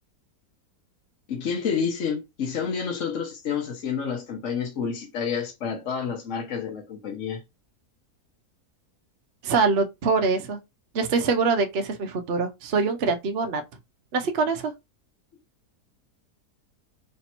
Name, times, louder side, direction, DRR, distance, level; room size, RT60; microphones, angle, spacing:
voice 1, 1.3-7.4, left 6 dB, 55° left, 1.1 m, -29 dB
voice 2, 9.4-10.6 10.9-13.6 14.1-14.7, right 4 dB, 50° right, 0.8 m, -24 dB
3.4 x 2.8 x 4.3 m
omnidirectional pair, 1.7 m